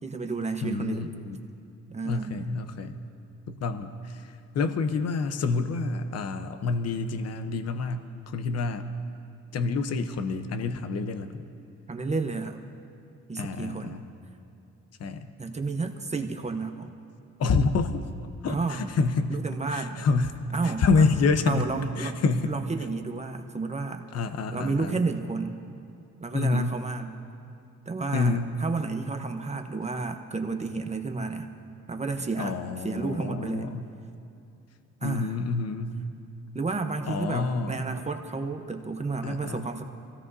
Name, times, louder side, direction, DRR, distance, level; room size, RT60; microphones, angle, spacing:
voice 1, 0.0-1.1 1.9-2.4 11.9-12.6 13.3-14.0 15.4-16.9 18.5-18.8 19.3-20.0 20.5-21.1 21.5-24.1 24.5-25.6 26.2-27.1 27.9-31.5 31.9-32.6 32.8-33.7 35.0-35.3 36.5-39.8, right 3 dB, 25° right, 6 dB, 0.9 m, -31 dB
voice 2, 0.6-1.4 2.0-3.0 3.5-8.9 9.5-11.5 13.4-14.0 15.0-15.3 17.4-18.1 18.4-19.4 19.7-22.6 24.1-25.0 26.3-26.8 28.1-28.5 32.4-33.9 35.0-36.0 37.0-37.8 39.2-39.7, left 4 dB, 55° left, 8 dB, 0.9 m, -28 dB
24.0 x 16.5 x 2.7 m, 2.7 s
cardioid pair, 90°, 30 cm